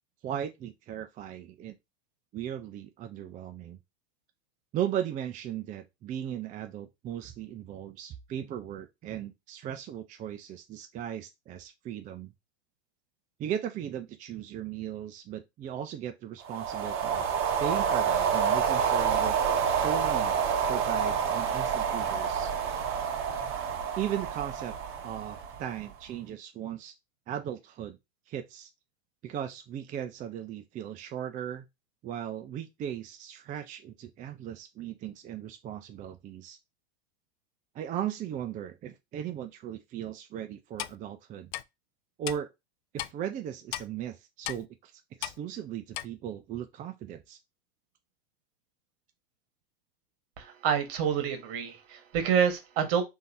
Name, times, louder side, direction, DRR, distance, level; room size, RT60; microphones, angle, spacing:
voice 1, 0.2-1.7 2.3-3.8 4.7-12.3 13.4-17.2 17.6-19.4 19.8-22.5 23.9-24.8 25.0-26.9 27.3-28.0 28.3-28.7 29.2-31.6 32.0-36.6 37.7-41.5 42.2-42.5 42.9-44.9 45.2-47.4, right 10 dB, 25° right, 0.4 m, -37 dB
sound 1, 16.4-25.9, right 7 dB, 40° right, 1.2 m, -28 dB
Clock, 40.8-41.0 41.5-41.6 42.3-42.4 43.0-43.1 43.7-43.9 44.4-44.6 45.2-45.4 45.9-46.1, left 14 dB, 65° left, 0.5 m, -35 dB
voice 2, 50.4-53.0, right 7 dB, 60° right, 1.4 m, -27 dB
3.7 x 2.7 x 4.1 m
hypercardioid pair, 110°, 32 cm